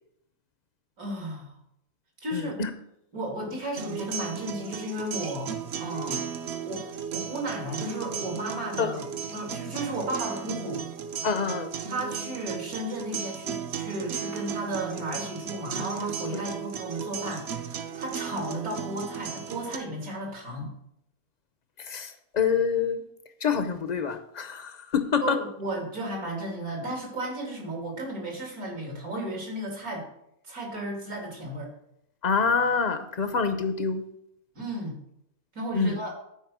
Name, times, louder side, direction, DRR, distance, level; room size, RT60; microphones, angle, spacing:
voice 1, 1.0-1.5 2.2-2.5 3.1-6.3 6.7-6.8 7.1-9.0 9.3-10.8 11.9-20.7 25.2-30.0 30.4-31.7 34.5-35.0 35.5-36.1, right 1 dB, 80° right, -1 dB, 3.0 m, -34 dB
voice 2, 2.3-2.7 8.8-9.0 11.2-11.7 16.3-16.4 21.8-23.0 23.4-25.4 32.2-34.0 35.7-36.0, left 5 dB, 45° left, 9 dB, 0.5 m, -26 dB
sound 1, 3.8-19.8, right 7 dB, 55° right, 0.9 m, -35 dB
9.4 x 4.7 x 6.1 m, 0.76 s
omnidirectional pair, 1.5 m